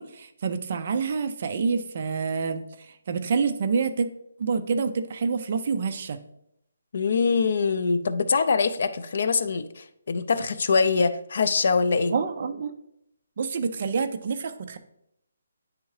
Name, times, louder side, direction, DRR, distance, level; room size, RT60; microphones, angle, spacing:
voice 1, 0.0-4.1 4.4-6.2 12.1-12.7 13.4-14.8, right 5 dB, 30° right, 9 dB, 0.4 m, -27 dB
voice 2, 6.9-12.1, left 4 dB, 45° left, 12 dB, 0.3 m, -23 dB
9.5 x 3.6 x 3.1 m, 0.78 s
hypercardioid pair, 180°, 0 cm